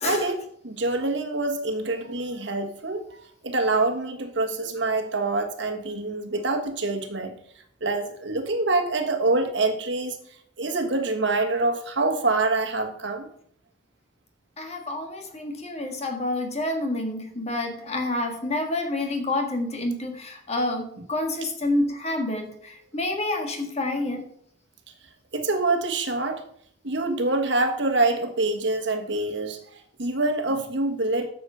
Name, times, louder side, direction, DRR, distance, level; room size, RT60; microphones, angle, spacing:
voice 1, 0.0-3.0 3.4-7.3 7.8-10.2 10.6-13.3 25.3-26.4 26.8-31.3, right 2 dB, 65° right, 5 dB, 1.4 m, -25 dB
voice 2, 14.6-24.2, left 2 dB, 35° left, 4 dB, 1.7 m, -28 dB
10.0 x 6.9 x 5.6 m, 0.65 s
head